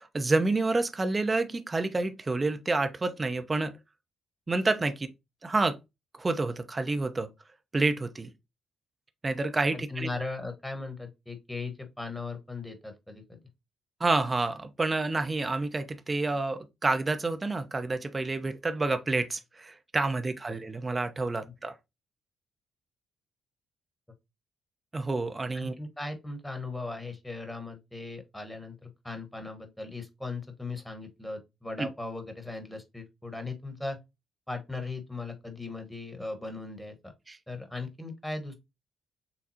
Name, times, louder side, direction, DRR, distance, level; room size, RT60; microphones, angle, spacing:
voice 1, 0.0-3.7 4.5-5.1 5.4-5.8 6.2-7.3 7.7-8.3 9.2-10.1 14.0-21.7 24.9-25.7 31.8-31.9 37.3-37.4, right 3 dB, 25° right, 0.7 m, -29 dB
voice 2, 9.7-13.4 25.5-34.0 34.5-37.1 37.5-38.6, left 3 dB, 10° left, 1.4 m, -38 dB
6.8 x 2.3 x 2.8 m
figure-of-eight pair, 40°, 0 cm